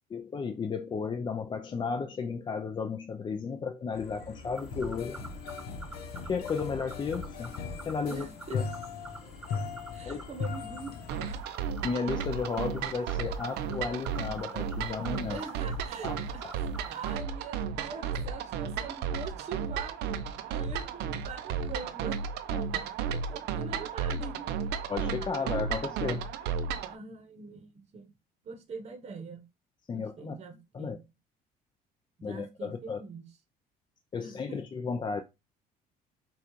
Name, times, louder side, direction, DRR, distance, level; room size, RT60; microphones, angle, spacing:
voice 1, 0.1-5.2 6.3-7.6 7.9-8.6 10.0-10.2 11.8-15.4 16.0-16.2 16.4-16.5 22.5-22.8 24.9-26.2 29.9-30.4 30.7-31.0 32.2-33.0 34.1-35.2, left 5 dB, 25° left, 0.4 m, -34 dB
sound 1, 3.9-11.4, left 5 dB, 70° left, 1.0 m, -39 dB
sound 2, 4.6-17.2, right 2 dB, 5° right, 0.7 m, -49 dB
voice 2, 8.1-8.6 9.9-11.7 15.3-22.2 23.1-24.5 26.9-28.1 28.4-29.4 29.9-31.1 32.2-33.3 34.2-34.6, right 4 dB, 40° right, 0.9 m, -43 dB
sound 3, 11.1-27.0, right 6 dB, 85° right, 0.5 m, -34 dB
5.9 x 2.3 x 3.0 m
cardioid pair, 110°, 17 cm